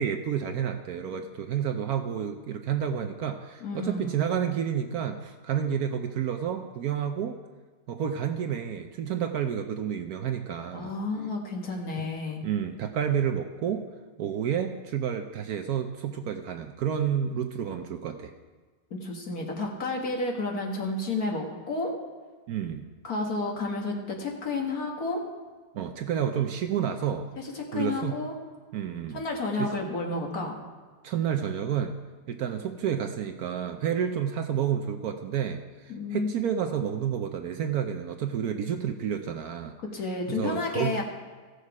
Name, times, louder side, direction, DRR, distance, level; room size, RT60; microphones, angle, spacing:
voice 1, 0.0-7.4 7.9-10.9 12.0-12.1 12.4-13.9 14.2-18.3 22.5-22.9 25.7-27.3 27.7-28.2 28.7-29.2 29.6-29.7 31.0-32.0 32.3-39.7 40.3-40.9, right 8 dB, 70° right, 6 dB, 1.0 m, -30 dB
voice 2, 3.6-4.2 10.7-12.4 18.9-21.9 23.0-25.2 27.4-28.3 29.1-30.6 35.9-36.3 39.9-41.0, left 3 dB, 55° left, 1 dB, 1.9 m, -31 dB
16.0 x 6.6 x 4.8 m, 1.4 s
omnidirectional pair, 1.9 m